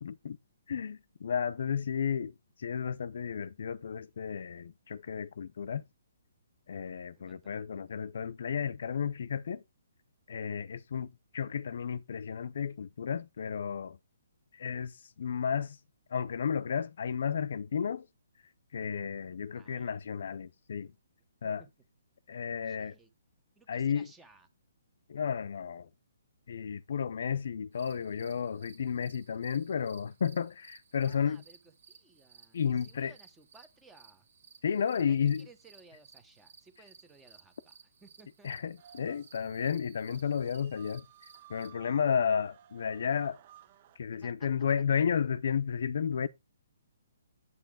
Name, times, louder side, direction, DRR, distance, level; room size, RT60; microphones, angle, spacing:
voice 1, 0.0-0.4 0.7-2.3 2.6-5.8 6.7-9.6 10.3-14.0 14.5-15.8 16.1-18.1 18.7-20.9 21.4-21.6 22.3-23.0 23.7-24.1 25.1-25.9 26.5-31.4 32.5-33.1 34.6-35.5 38.4-41.0 41.5-43.4 44.0-46.3, left 7 dB, 55° left, 0.6 m, -32 dB
voice 2, 7.1-7.5 19.5-19.9 21.6-21.7 22.6-23.1 23.6-24.5 30.9-34.3 35.0-38.5 44.1-44.5, right 3 dB, 5° right, 1.0 m, -60 dB
sound 1, 27.7-41.7, right 6 dB, 55° right, 1.8 m, -59 dB
sound 2, 38.8-44.0, right 10 dB, 30° right, 0.5 m, -56 dB
8.3 x 6.9 x 3.7 m
hypercardioid pair, 170°, 0 cm